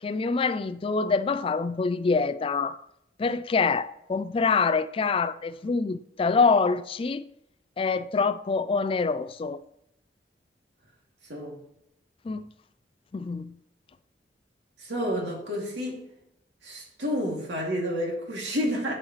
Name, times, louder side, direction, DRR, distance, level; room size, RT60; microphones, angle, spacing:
voice 1, 0.0-2.8 3.2-7.2 7.8-9.6 12.2-12.4 13.1-13.5, left 4 dB, 30° left, 0.3 m, -25 dB
voice 2, 14.8-16.0 16.6-18.9, equal, 85° right, 2.6 m, -30 dB
11.0 x 5.5 x 3.1 m
head